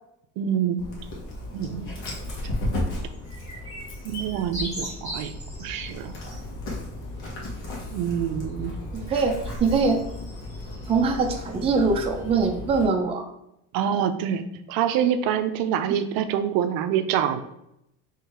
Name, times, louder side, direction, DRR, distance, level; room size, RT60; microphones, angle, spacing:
voice 1, 0.4-0.9 1.5-1.9 4.0-5.3 5.6-6.2 7.9-8.8 13.7-17.4, right 9 dB, 65° right, 9 dB, 0.5 m, -26 dB
Dog, 0.8-12.8, left 1 dB, 80° left, 1.5 m, -35 dB
sound 1, 3.3-5.8 6.2-6.4, equal, 20° left, 1.6 m, -36 dB
voice 2, 8.9-10.0 10.9-13.2, right 4 dB, 15° right, 2 dB, 0.4 m, -23 dB
3.7 x 3.2 x 4.2 m, 0.80 s
cardioid pair, 150°, 37 cm